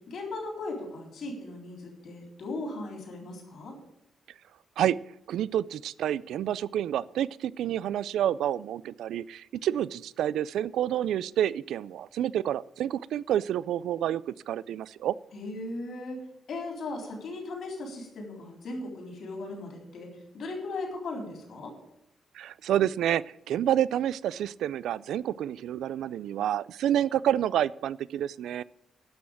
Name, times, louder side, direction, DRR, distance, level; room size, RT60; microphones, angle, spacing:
voice 1, 0.1-3.8 15.3-16.2 16.5-21.7, left 2 dB, 55° left, 1 dB, 3.8 m, -37 dB
voice 2, 5.3-15.2 22.3-28.6, right 11 dB, 85° right, 20 dB, 0.3 m, -29 dB
11.5 x 6.3 x 8.9 m, 0.80 s
cardioid pair, 145°, 0 cm